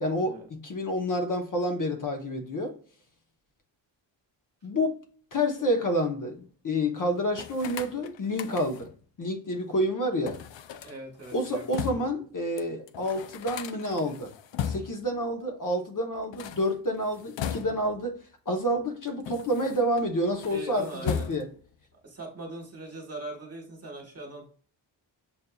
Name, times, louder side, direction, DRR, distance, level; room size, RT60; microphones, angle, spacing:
voice 1, 0.0-2.7 4.6-4.9 5.3-8.9 9.2-10.4 11.3-14.3 14.6-18.2 18.5-21.5, equal, 45° left, 4 dB, 0.8 m, -29 dB
sound 1, 7.3-9.0 10.3-12.2 12.6-12.7 12.9-15.1 16.2-18.0 18.8-20.1 20.4-21.7, left 8 dB, 80° left, 0.5 m, -37 dB
voice 2, 10.8-12.1 19.3-19.4 20.5-21.3 22.0-24.5, right 2 dB, 35° right, 1 dB, 1.2 m, -41 dB
7.1 x 2.6 x 2.3 m, 0.44 s
wide cardioid pair, 95°, 44 cm